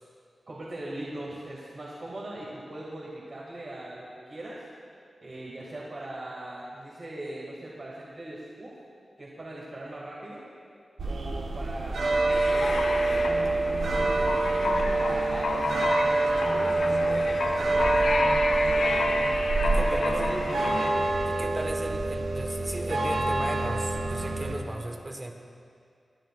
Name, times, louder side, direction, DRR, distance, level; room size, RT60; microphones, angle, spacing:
voice 1, 0.5-4.6 5.2-8.7 9.2-10.4 11.1-13.3 13.6-15.7 16.1-19.3 19.8-20.6, right 1 dB, 55° right, -6 dB, 2.3 m, -40 dB
sound 1, 11.0-24.6, right 2 dB, 85° right, 1.3 m, -26 dB
sound 2, 12.3-20.9, left 2 dB, 90° left, 1.1 m, -30 dB
voice 2, 19.6-20.3 21.3-25.3, right 1 dB, 30° right, 3 dB, 1.4 m, -36 dB
23.0 x 10.5 x 2.5 m, 2.3 s
cardioid pair, 55°, 0 cm